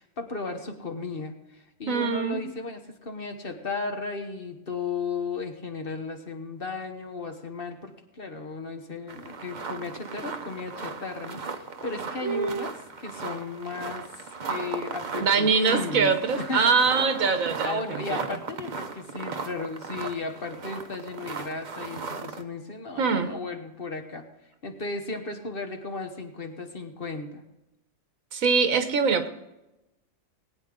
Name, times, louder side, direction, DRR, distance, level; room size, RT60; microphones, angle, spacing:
voice 1, 0.0-16.7 17.6-24.3 24.6-27.4, left 3 dB, 45° left, 5 dB, 1.3 m, -35 dB
voice 2, 1.9-2.4 12.2-12.6 15.2-17.8 18.1-18.2 23.0-23.3 28.3-29.3, right 5 dB, 80° right, 8 dB, 1.5 m, -23 dB
sound 1, 9.1-22.4, right 4 dB, 40° right, 0.8 m, -37 dB
19.5 x 9.2 x 3.8 m, 0.95 s
omnidirectional pair, 1.4 m